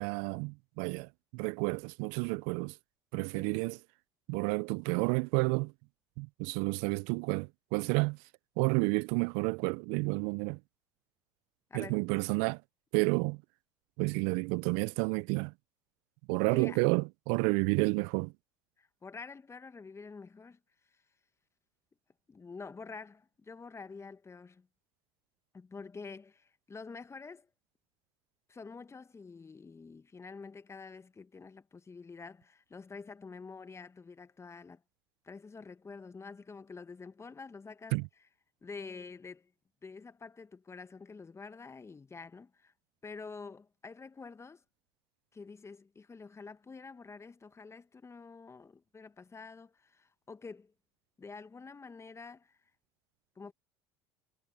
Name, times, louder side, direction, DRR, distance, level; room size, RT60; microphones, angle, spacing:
voice 1, 0.0-2.7 3.1-3.8 4.3-5.7 6.2-8.2 8.6-10.6 11.7-12.6 12.9-13.4 14.0-15.5 16.3-18.3 37.9-38.1, right 30 dB, 65° right, 0.6 m, -30 dB
voice 2, 3.2-3.5 11.7-12.0 16.5-16.8 18.8-20.6 20.9-21.0 22.3-24.7 25.5-27.5 28.5-34.8 35.2-38.0 38.6-39.5 39.8-42.7 43.0-44.6 45.3-50.7 51.2-52.6 53.3-53.5, left 4 dB, 20° left, 1.6 m, -48 dB
hypercardioid pair, 70°, 12 cm